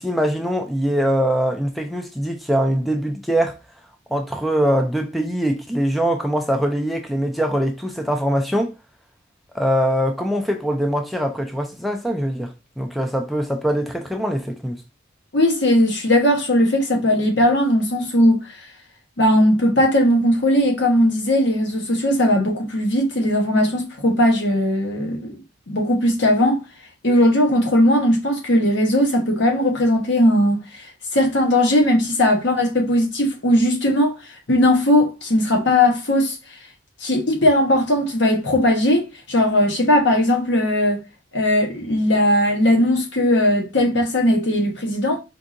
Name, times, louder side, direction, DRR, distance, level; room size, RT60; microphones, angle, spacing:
voice 1, 0.0-3.6 4.1-8.7 9.5-14.8, equal, ahead, 0.4 m, -22 dB
voice 2, 15.3-18.6 19.2-25.4 25.7-26.6 27.0-30.9 31.1-34.1 34.5-36.4 37.0-41.0 41.3-45.2, left 1 dB, 65° left, 1.1 m, -18 dB
4.5 x 2.7 x 2.5 m
head